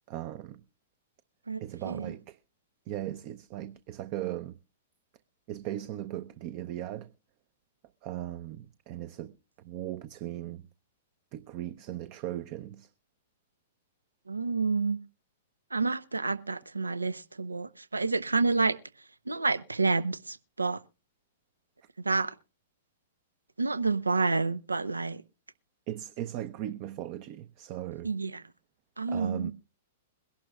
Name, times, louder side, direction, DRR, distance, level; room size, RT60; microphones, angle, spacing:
voice 1, 0.1-0.6 1.6-2.4 2.9-4.6 5.5-7.1 8.0-10.7 11.3-12.9 25.9-28.1 29.1-29.5, right 13 dB, 40° right, 0.6 m, -38 dB
voice 2, 1.5-2.1 14.3-15.0 15.7-18.8 19.3-20.8 22.0-22.3 23.6-25.2 28.0-28.4 29.0-29.5, right 4 dB, 85° right, 0.6 m, -29 dB
22.5 x 11.5 x 2.3 m
figure-of-eight pair, 105°, 0 cm